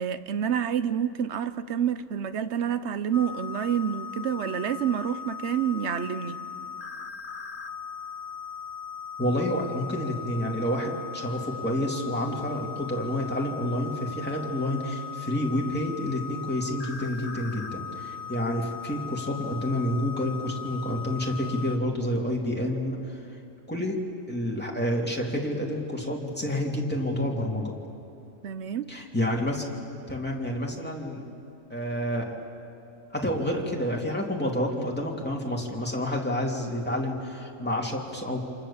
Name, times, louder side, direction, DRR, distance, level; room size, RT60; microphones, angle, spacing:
voice 1, 0.0-6.4 9.2-9.3 23.8-23.9 28.4-28.9, right 8 dB, 60° right, 1.1 m, -28 dB
sound 1, 3.1-21.8, left 7 dB, 35° left, 0.9 m, -39 dB
voice 2, 9.2-23.2 23.7-24.0 24.3-27.7 28.9-29.7 30.1-31.3 31.7-32.3 33.1-38.4, left 1 dB, 5° left, 2.9 m, -29 dB
29.0 x 27.0 x 7.3 m
omnidirectional pair, 1.4 m